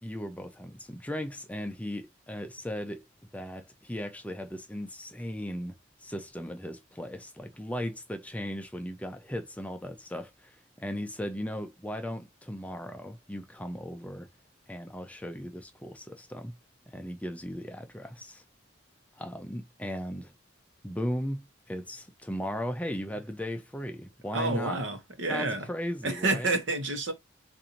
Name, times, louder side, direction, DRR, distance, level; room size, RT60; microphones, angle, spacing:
voice 1, 0.0-3.0 3.3-14.3 14.7-16.6 16.9-18.4 19.2-20.3 20.8-24.8 25.3-26.5, equal, 5° left, 0.4 m, -37 dB
voice 2, 24.3-25.7 26.0-27.1, right 2 dB, 65° right, 0.9 m, -29 dB
3.9 x 2.5 x 2.8 m
head